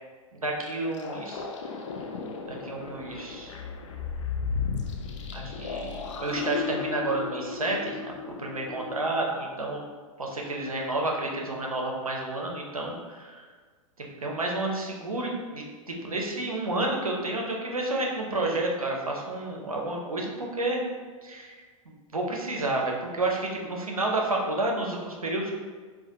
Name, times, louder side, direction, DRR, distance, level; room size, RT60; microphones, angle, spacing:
voice 1, 0.3-1.5 2.5-3.6 5.3-9.8 10.2-13.5 14.0-20.8 21.2-25.5, right 2 dB, 85° right, 0 dB, 0.6 m, -30 dB
sound 1, 0.6-9.1, left 5 dB, 60° left, 0.4 m, -35 dB
3.9 x 2.2 x 2.8 m, 1.5 s
figure-of-eight pair, 100°, 18 cm